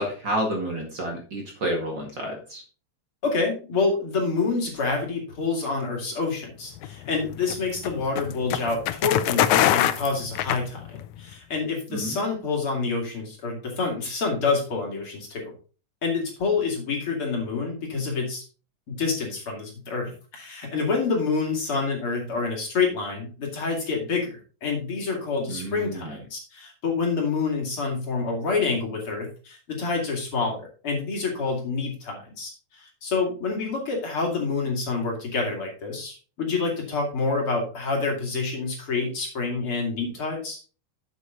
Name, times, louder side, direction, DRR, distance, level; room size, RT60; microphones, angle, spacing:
voice 1, 0.0-2.6 11.9-12.2 25.5-26.2, right 1 dB, 40° right, 0 dB, 2.3 m, -30 dB
voice 2, 3.2-15.5 16.0-18.4 18.9-40.6, left 4 dB, 50° left, 0 dB, 3.1 m, -27 dB
sound 1, 6.8-11.2, left 12 dB, 80° left, 1.9 m, -24 dB
8.2 x 7.9 x 3.8 m, 0.37 s
omnidirectional pair, 3.4 m